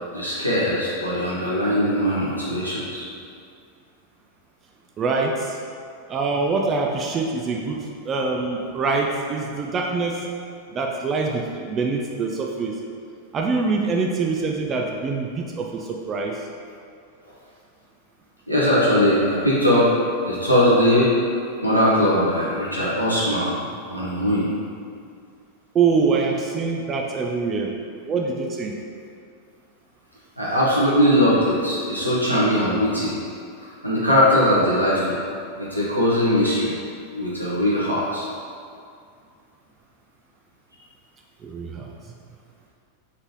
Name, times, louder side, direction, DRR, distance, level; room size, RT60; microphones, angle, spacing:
voice 1, 0.1-3.1 18.5-19.9 20.2-21.1 21.6-23.6 23.9-24.5 30.4-33.2 33.8-35.2 35.6-36.7 37.1-38.3, equal, 90° right, -8 dB, 1.1 m, -20 dB
voice 2, 5.0-5.6 6.1-10.3 10.7-12.8 13.3-16.5 25.7-27.8 28.0-28.8 41.4-41.9, right 4 dB, 25° right, 1 dB, 0.3 m, -24 dB
3.9 x 3.7 x 3.1 m, 2.3 s
figure-of-eight pair, 90°, 0 cm